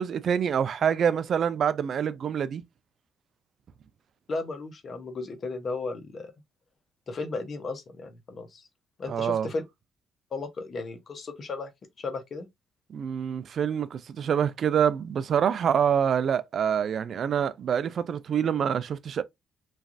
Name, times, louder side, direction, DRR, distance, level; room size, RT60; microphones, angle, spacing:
voice 1, 0.0-2.6 9.1-9.5 12.9-19.2, right 8 dB, 60° right, 0.3 m, -26 dB
voice 2, 4.3-6.3 7.1-8.7 9.0-9.6 10.3-11.7 12.0-12.5, left 3 dB, 45° left, 0.8 m, -35 dB
3.1 x 2.3 x 2.5 m
cardioid pair, 90°, 0 cm